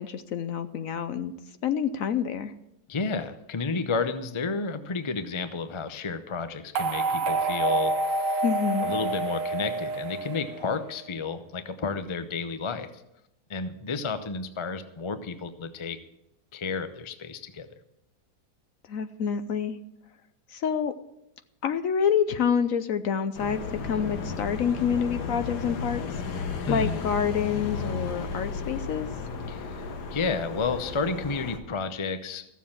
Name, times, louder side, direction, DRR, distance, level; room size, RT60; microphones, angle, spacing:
voice 1, 0.0-1.3 1.6-2.5 8.4-8.9 18.9-19.8 20.5-20.9 21.6-26.0 26.3-29.1, left 7 dB, 65° left, 10 dB, 1.0 m, -27 dB
voice 2, 2.9-8.4 8.8-12.9 13.5-16.0 16.5-17.7 26.7-27.0 29.5-29.8 30.1-32.5, left 4 dB, 30° left, 10 dB, 0.5 m, -31 dB
sound 1, 6.8-11.0, right 3 dB, 60° right, 1.0 m, -28 dB
sound 2, 23.4-31.6, left 5 dB, 85° left, 1.7 m, -34 dB
14.5 x 7.1 x 7.3 m, 0.85 s
omnidirectional pair, 1.7 m